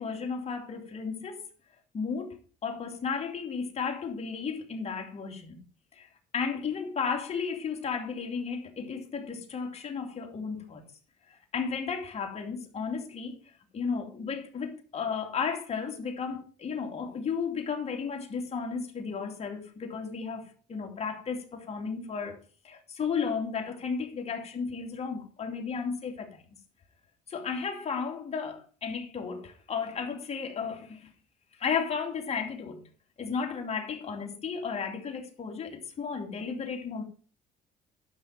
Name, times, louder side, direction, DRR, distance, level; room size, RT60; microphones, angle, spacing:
voice 1, 0.0-1.5 1.9-5.6 5.9-6.1 6.3-10.8 11.5-22.4 22.6-26.4 27.3-31.1 31.6-32.8 33.2-37.0, left 5 dB, 40° left, 2.8 m, -34 dB
12.0 x 6.0 x 4.9 m
cardioid pair, 110°, 17 cm